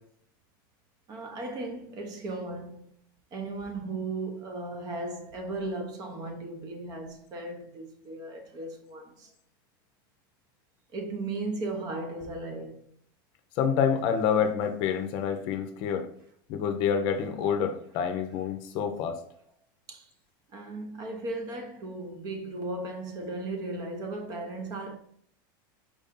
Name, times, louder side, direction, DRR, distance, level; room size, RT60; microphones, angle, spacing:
voice 1, 1.1-2.9 3.3-9.3 10.9-12.8 19.9-20.1 20.5-25.0, right 2 dB, 35° right, 0.8 m, -36 dB
voice 2, 13.6-16.1 16.5-19.2, left 7 dB, 45° left, 0.6 m, -27 dB
4.7 x 2.7 x 3.6 m
supercardioid pair, 145°, 12 cm